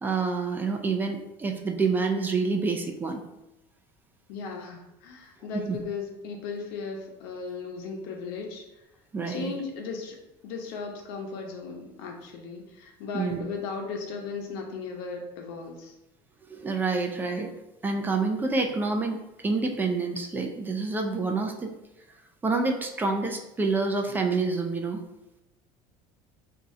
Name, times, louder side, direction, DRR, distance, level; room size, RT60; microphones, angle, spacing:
voice 1, 0.0-3.2 5.5-5.8 9.1-9.5 13.1-13.4 16.5-17.5 17.8-21.7 22.4-25.0, right 4 dB, 15° right, 3 dB, 0.4 m, -27 dB
voice 2, 4.3-8.6 9.3-10.2 10.4-15.9, left 4 dB, 80° left, 1 dB, 0.9 m, -36 dB
3.6 x 2.7 x 4.3 m, 0.91 s
cardioid pair, 140°, 12 cm